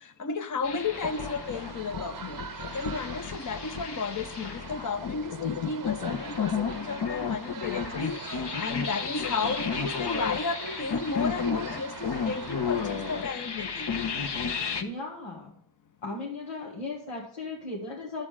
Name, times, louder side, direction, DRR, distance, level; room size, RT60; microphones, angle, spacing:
voice 1, 0.2-2.4 2.7-8.2 8.6-13.9, left 4 dB, 40° left, 8 dB, 1.0 m, -33 dB
sound 1, 0.6-14.8, left 6 dB, 55° left, 1.0 m, -33 dB
sound 2, 0.9-13.2, right 7 dB, 40° right, 0.7 m, -42 dB
voice 2, 14.8-15.6 16.0-18.3, left 3 dB, 85° left, -3 dB, 1.8 m, -37 dB
9.7 x 7.5 x 4.9 m, 0.63 s
cardioid pair, 45°, 50 cm